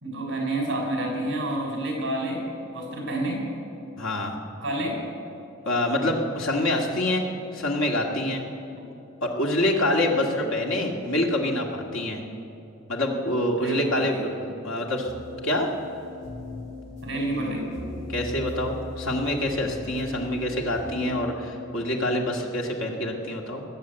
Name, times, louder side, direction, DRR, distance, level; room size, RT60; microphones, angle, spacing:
voice 1, 0.0-3.5 4.6-5.0 6.0-6.1 10.1-10.2 13.6-14.3 17.0-17.7, right 1 dB, 60° right, 0 dB, 4.3 m, -29 dB
voice 2, 4.0-4.4 5.7-7.2 7.5-8.4 9.2-12.2 12.9-14.3 14.6-15.1 15.4-15.7 18.1-23.6, left 1 dB, 75° left, 1 dB, 1.9 m, -26 dB
sound 1, 15.0-21.1, left 1 dB, 40° left, 4.6 m, -39 dB
20.0 x 7.6 x 7.7 m, 2.9 s
head